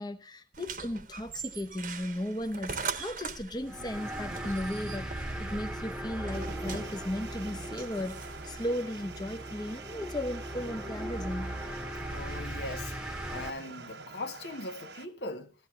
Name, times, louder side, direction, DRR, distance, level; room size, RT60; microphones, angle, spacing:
voice 1, 0.0-11.6, left 1 dB, 25° left, 0.8 m, -36 dB
sound 1, 0.5-8.7, right 5 dB, 50° right, 1.0 m, -41 dB
sound 2, 3.6-13.5, right 1 dB, 5° right, 1.1 m, -39 dB
sound 3, 6.3-15.1, right 4 dB, 80° right, 1.1 m, -47 dB
voice 2, 12.1-12.9 13.3-15.5, left 2 dB, 75° left, 1.4 m, -40 dB
15.5 x 13.5 x 3.3 m
head